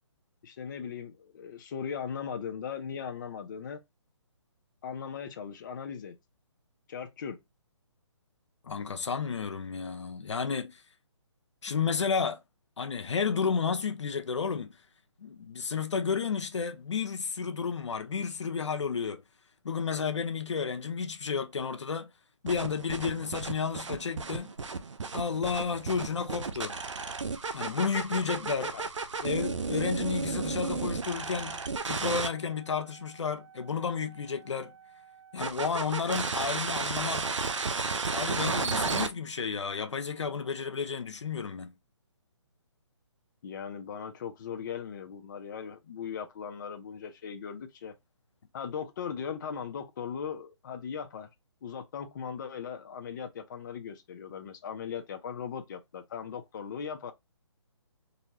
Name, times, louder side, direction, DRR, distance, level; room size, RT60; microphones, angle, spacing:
voice 1, 0.4-3.8 4.8-6.2 6.9-7.4 28.7-28.9 43.4-47.9 48.5-51.3 51.6-57.1, left 7 dB, 40° left, 0.7 m, -38 dB
voice 2, 8.6-10.8 11.6-12.4 12.8-14.8 15.2-19.2 19.6-22.1 22.4-24.5 25.1-26.8 27.5-28.7 29.2-34.7 35.3-37.3 38.0-41.7, left 6 dB, 75° left, 0.8 m, -32 dB
sound 1, 22.5-32.3 35.4-39.1, right 4 dB, 85° right, 0.8 m, -33 dB
4.0 x 2.8 x 2.8 m
hypercardioid pair, 155°, 15 cm